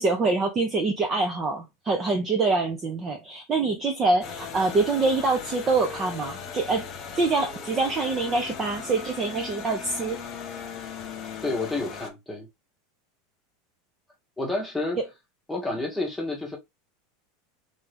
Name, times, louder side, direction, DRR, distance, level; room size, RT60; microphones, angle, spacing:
voice 1, 0.0-6.9 7.1-10.2 15.0-15.1, right 3 dB, 20° right, 0.5 m, -25 dB
sound 1, 4.2-12.1, left 6 dB, 25° left, 0.7 m, -38 dB
voice 2, 11.4-12.5 14.4-15.0 15.5-16.6, left 2 dB, ahead, 0.9 m, -29 dB
3.4 x 2.6 x 3.3 m
supercardioid pair, 170°, 0 cm